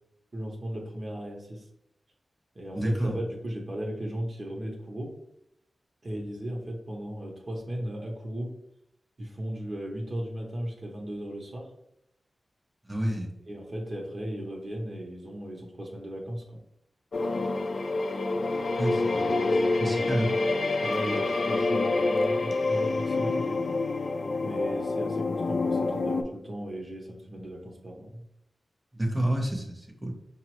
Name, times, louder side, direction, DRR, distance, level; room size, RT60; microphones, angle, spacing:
voice 1, 0.3-1.7 2.5-5.1 6.0-8.5 9.2-11.7 13.5-16.6 19.1-23.6 24.4-28.2, right 1 dB, 45° right, -1 dB, 0.7 m, -36 dB
voice 2, 2.7-3.2 12.8-13.3 18.7-19.5 19.8-20.3 28.9-30.1, right 1 dB, 10° right, -1 dB, 0.8 m, -29 dB
sound 1, 17.1-26.2, left 3 dB, 60° left, 0.4 m, -27 dB
5.3 x 2.0 x 3.0 m, 0.79 s
wide cardioid pair, 75°, 0 cm